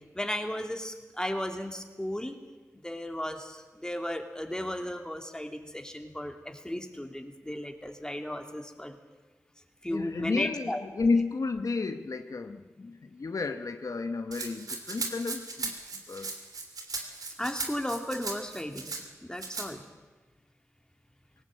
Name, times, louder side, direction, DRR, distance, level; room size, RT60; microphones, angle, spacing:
voice 1, 0.1-2.4 2.8-9.0 9.8-10.8 17.4-18.9 19.2-19.8, left 1 dB, 10° left, 4 dB, 2.8 m, -35 dB
voice 2, 9.9-15.8 16.1-16.3, left 4 dB, 65° left, 8 dB, 1.0 m, -31 dB
Rattle (instrument), 14.3-19.0 19.4-19.7, right 3 dB, 80° right, 2.9 m, -37 dB
18.5 x 17.5 x 8.9 m, 1.2 s
cardioid pair, 50°, 6 cm